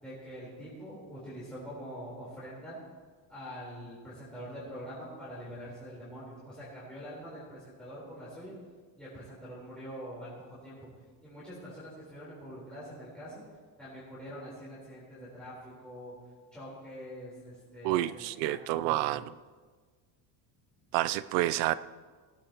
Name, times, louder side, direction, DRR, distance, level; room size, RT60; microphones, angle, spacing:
voice 1, 0.0-2.8 3.3-8.5 9.0-10.3 10.6-10.8 11.2-13.4 13.8-15.5 15.8-16.1 16.5-19.0, equal, ahead, -10 dB, 4.0 m, -44 dB
voice 2, 17.8-19.2 20.9-21.7, right 15 dB, 80° right, 15 dB, 0.6 m, -29 dB
18.5 x 16.0 x 3.0 m, 1.5 s
cardioid pair, 150°, 45 cm